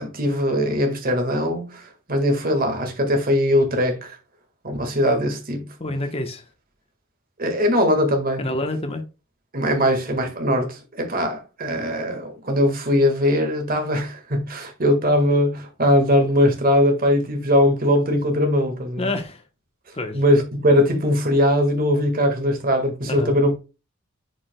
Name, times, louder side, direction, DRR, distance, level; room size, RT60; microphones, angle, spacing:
voice 1, 0.0-4.2 4.6-5.7 7.4-8.4 9.5-19.1 20.1-23.5, left 1 dB, 45° right, 1.7 m, -20 dB
voice 2, 5.8-6.4 8.4-9.0 19.0-19.4 19.9-20.2 23.1-23.4, left 2 dB, 30° left, 1.0 m, -27 dB
9.9 x 4.9 x 2.2 m
head